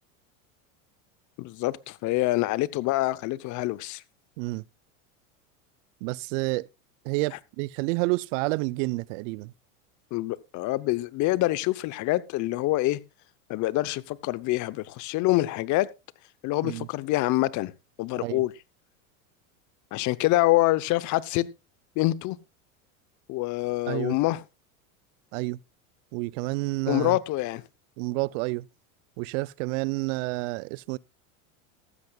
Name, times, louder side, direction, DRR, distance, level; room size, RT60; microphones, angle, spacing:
voice 1, 1.4-4.0 10.1-13.0 13.5-15.9 16.4-17.7 18.0-18.5 19.9-21.5 22.0-22.4 23.3-24.4 26.9-27.6, left 18 dB, 45° left, 0.8 m, -26 dB
voice 2, 6.0-6.7 7.0-9.5 16.6-16.9 18.2-18.4 23.9-24.2 25.3-25.6 26.1-27.2 28.0-28.7 29.2-31.0, right 23 dB, 60° right, 0.6 m, -29 dB
15.0 x 13.0 x 2.3 m
supercardioid pair, 105°, 41 cm